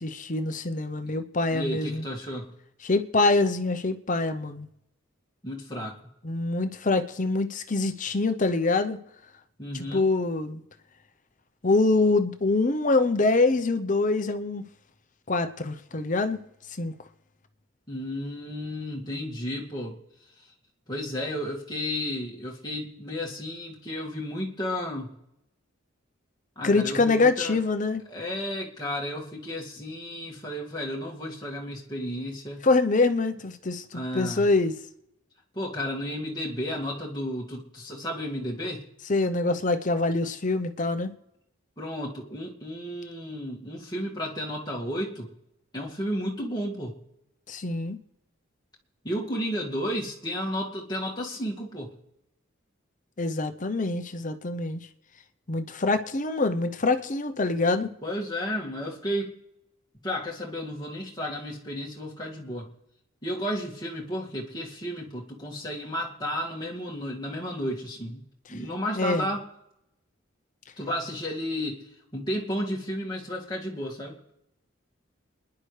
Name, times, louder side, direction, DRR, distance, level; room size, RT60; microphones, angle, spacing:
voice 1, 0.0-2.0 2.8-4.7 6.2-9.0 9.7-10.6 11.6-14.6 15.3-16.4 16.8-16.9 26.6-28.0 32.6-34.8 39.1-41.1 47.5-48.0 53.2-54.8 55.5-57.9 69.0-69.3, left 3 dB, 35° left, 9 dB, 0.8 m, -25 dB
voice 2, 1.5-2.5 5.4-6.0 9.6-10.0 17.9-20.0 20.9-25.1 26.6-27.6 28.1-32.6 33.9-34.5 35.5-38.9 41.8-45.3 45.7-46.9 49.0-51.9 58.0-59.4 60.0-62.7 63.2-69.5 70.8-71.9 72.1-74.2, equal, 20° left, -3 dB, 2.1 m, -33 dB
28.0 x 10.5 x 3.3 m, 0.84 s
head